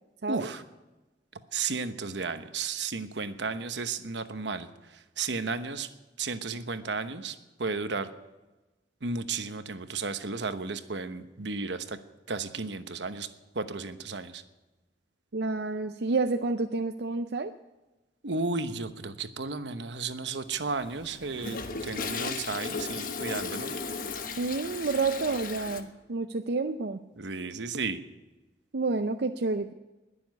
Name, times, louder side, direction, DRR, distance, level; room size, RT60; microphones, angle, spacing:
voice 1, 0.3-0.6 1.5-4.7 5.2-5.9 6.2-8.1 9.0-12.0 12.3-13.3 13.5-14.4 18.2-23.7 27.2-28.0, right 4 dB, 80° right, 10 dB, 1.1 m, -33 dB
voice 2, 15.3-17.5 24.4-27.0 28.7-29.7, right 3 dB, 65° right, 7 dB, 0.6 m, -29 dB
Toilet flush, 20.5-25.8, left 4 dB, 50° left, 1.2 m, -36 dB
20.5 x 7.1 x 9.3 m, 1.1 s
head